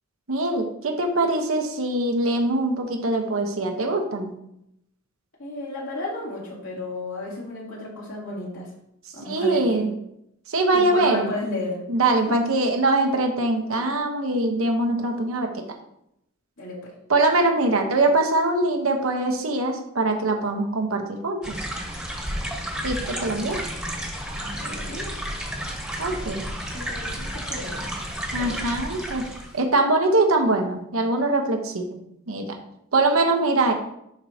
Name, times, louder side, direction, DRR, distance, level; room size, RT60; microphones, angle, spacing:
voice 1, 0.3-4.3 9.2-9.9 10.5-11.3 11.9-15.6 17.1-21.6 22.8-23.6 26.0-26.4 28.3-29.3 29.5-32.0 32.3-32.5 32.9-33.7, right 2 dB, 85° right, 3 dB, 1.1 m, -22 dB
voice 2, 5.4-8.7 9.1-9.9 10.7-11.8 12.3-12.4 16.6-16.9 24.3-25.2 26.1-27.9 28.4-28.6, left 2 dB, 65° left, -5 dB, 2.9 m, -34 dB
sound 1, 21.4-29.6, equal, 5° right, 1.3 m, -32 dB
11.5 x 4.5 x 2.8 m, 0.78 s
head